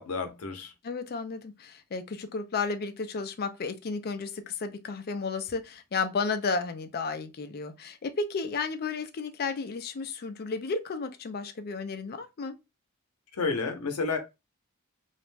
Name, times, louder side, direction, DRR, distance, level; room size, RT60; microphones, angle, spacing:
voice 1, 0.0-0.7 13.3-14.2, left 4 dB, 80° left, 0.6 m, -30 dB
voice 2, 0.8-12.6, left 4 dB, 45° left, 0.4 m, -33 dB
2.4 x 2.1 x 3.1 m
head